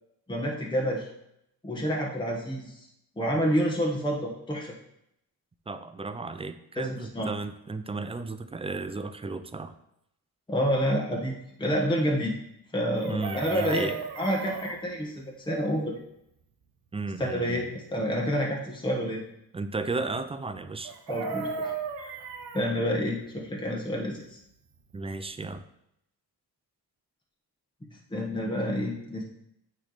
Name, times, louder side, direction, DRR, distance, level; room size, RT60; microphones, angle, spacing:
voice 1, 0.3-1.1 1.6-2.8 3.2-4.7 6.7-7.3 10.5-12.3 12.7-16.0 17.2-19.2 21.1-21.7 22.0-22.1 22.5-24.4 28.1-29.2, equal, 10° left, -1 dB, 1.2 m, -28 dB
voice 2, 5.7-9.7 13.1-14.0 16.9-17.6 19.5-20.9 24.9-25.6, right 3 dB, 15° right, 10 dB, 0.4 m, -34 dB
Chicken rooster, 13.0-14.8 20.8-22.7 24.9-25.0 25.3-25.5, right 4 dB, 75° right, 1.0 m, -35 dB
9.1 x 3.3 x 4.0 m, 0.78 s
cardioid pair, 105°, 39 cm